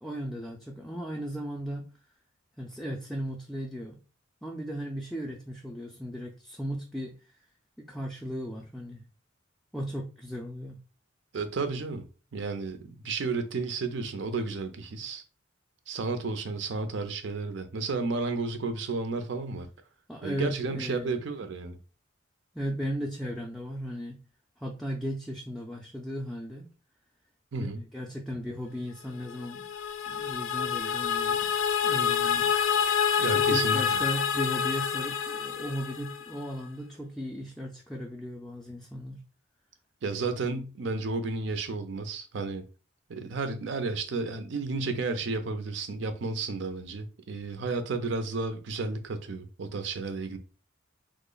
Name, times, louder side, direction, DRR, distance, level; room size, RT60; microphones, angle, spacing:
voice 1, 0.0-1.9 2.6-4.0 4.4-7.1 7.8-9.0 9.7-10.8 20.1-21.2 22.5-24.2 24.6-26.7 27.9-29.7 30.1-31.5 31.8-32.5 33.3-39.2, equal, ahead, 0.4 m, -36 dB
voice 2, 11.3-12.1 12.3-15.2 15.9-19.7 20.2-21.8 27.5-27.8 33.2-34.0 40.0-42.6 43.1-50.4, right 3 dB, 65° right, 0.5 m, -32 dB
sound 1, 29.3-36.4, left 7 dB, 85° left, 0.4 m, -27 dB
3.0 x 2.0 x 3.8 m
head